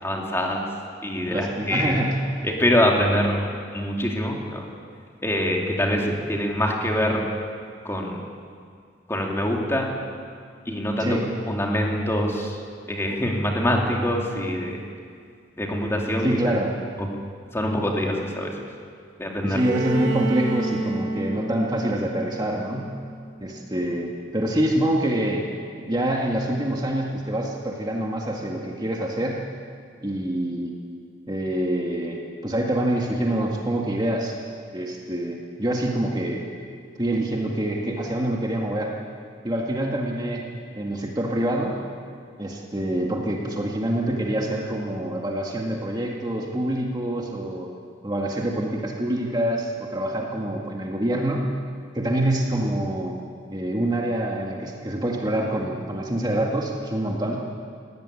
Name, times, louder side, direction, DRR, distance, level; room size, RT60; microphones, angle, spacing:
voice 1, 0.0-0.7 1.0-1.9 2.4-3.5 3.7-4.6 5.2-7.3 7.8-8.2 9.1-10.0 10.7-11.2 11.5-12.6 12.9-14.8 15.6-16.4 17.0-17.1 17.5-18.5 19.2-19.6, left 1 dB, 15° left, 0 dB, 2.8 m, -24 dB
voice 2, 1.3-2.2 11.0-11.3 16.2-16.7 19.4-22.9 23.4-25.5 25.7-29.4 30.0-30.8 31.3-34.4 34.7-36.4 37.0-39.0 39.4-40.5 40.8-41.8 42.4-47.7 48.0-51.5 51.9-53.2 53.5-57.4, right 1 dB, 20° right, -1 dB, 1.9 m, -26 dB
Bowed string instrument, 19.5-23.4, right 2 dB, 70° right, 4.1 m, -30 dB
20.0 x 17.0 x 9.8 m, 2.2 s
head